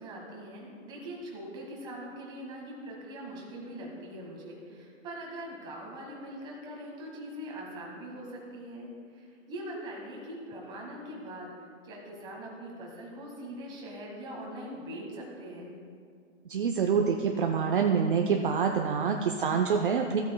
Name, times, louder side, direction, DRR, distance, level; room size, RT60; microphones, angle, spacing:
voice 1, 0.0-11.5 11.8-15.8, right 1 dB, 10° right, -2 dB, 1.2 m, -42 dB
voice 2, 16.5-20.2, right 6 dB, 45° right, 3 dB, 0.5 m, -26 dB
15.0 x 8.3 x 2.2 m, 2.2 s
hypercardioid pair, 155°, 39 cm